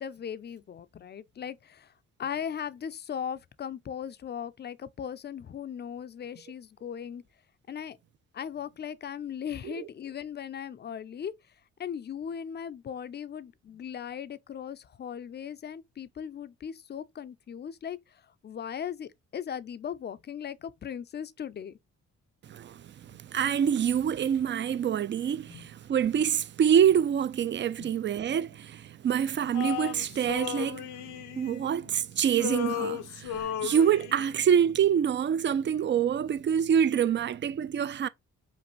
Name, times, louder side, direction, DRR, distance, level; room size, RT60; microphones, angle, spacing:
voice 1, 0.0-1.9 2.2-7.2 7.7-8.0 8.3-11.3 11.8-21.8 25.5-25.7 27.8-28.0, left 8 dB, 35° left, 0.5 m, -38 dB
voice 2, 22.4-38.1, right 8 dB, 40° right, 0.5 m, -26 dB
Male singing, 29.5-32.0 32.3-34.4, left 11 dB, 80° left, 0.7 m, -35 dB
5.2 x 2.6 x 3.0 m
cardioid pair, 90°, 30 cm